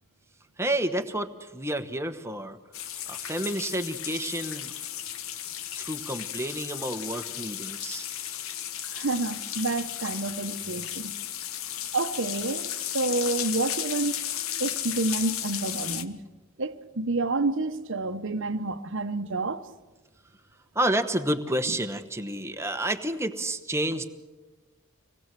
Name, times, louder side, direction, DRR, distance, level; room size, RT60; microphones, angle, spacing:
voice 1, 0.6-2.6 3.1-4.7 5.8-8.1 20.7-24.1, right 1 dB, 10° right, 1.2 m, -30 dB
sound 1, 2.7-16.0, left 10 dB, 65° left, 1.1 m, -34 dB
voice 2, 8.9-11.1 11.9-14.2 14.6-16.2 16.6-19.7 21.7-21.8, right 2 dB, 60° right, 1.1 m, -29 dB
26.0 x 19.5 x 7.6 m
head